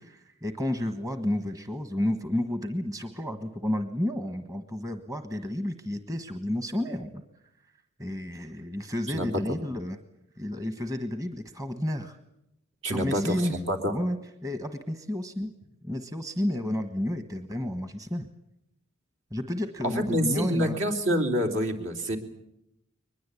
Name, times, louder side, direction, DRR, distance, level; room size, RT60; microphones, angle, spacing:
voice 1, 0.0-7.2 8.0-10.0 10.4-12.2 12.9-13.6 13.9-14.2 14.4-15.5 15.8-18.3 19.3-20.8, left 1 dB, 15° right, 8 dB, 1.4 m, -31 dB
voice 2, 12.8-13.9 19.8-22.2, equal, 65° right, 4 dB, 3.6 m, -27 dB
23.0 x 21.0 x 8.4 m, 0.82 s
head